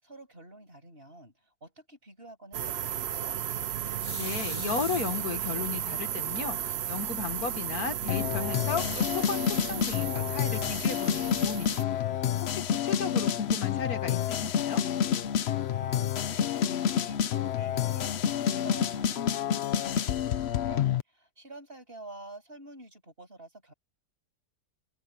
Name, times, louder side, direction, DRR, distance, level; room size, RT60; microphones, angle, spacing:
voice 1, 0.0-3.4 15.6-23.7, right 2 dB, 40° right, 7.6 m, -49 dB
sound 1, 2.5-11.8, right 10 dB, 60° right, 0.7 m, -34 dB
sound 2, 4.0-5.6 6.3-6.4 6.9-7.0 7.2-7.8, left 4 dB, 35° left, 1.6 m, -43 dB
voice 2, 4.1-14.8, left 6 dB, 80° left, 2.1 m, -35 dB
sound 3, 8.1-21.0, left 9 dB, 55° left, 0.8 m, -28 dB
omnidirectional pair, 1.5 m